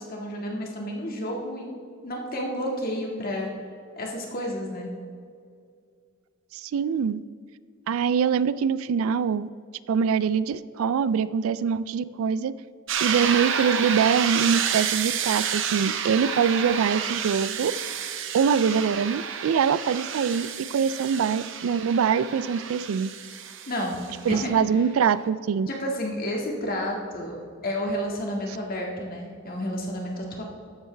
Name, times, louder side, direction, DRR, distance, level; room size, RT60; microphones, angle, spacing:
voice 1, 0.0-1.8 2.0-3.5 4.0-4.9 23.7-24.0 24.3-24.5 25.7-30.4, equal, 45° left, -1 dB, 1.9 m, -31 dB
voice 2, 6.5-7.2 7.9-9.5 9.9-12.5 13.0-17.7 18.3-23.1 24.3-25.7, right 6 dB, 80° right, 16 dB, 0.3 m, -24 dB
sound 1, 12.9-24.5, right 8 dB, 60° right, 0.7 m, -30 dB
13.5 x 7.7 x 3.4 m, 2.2 s
head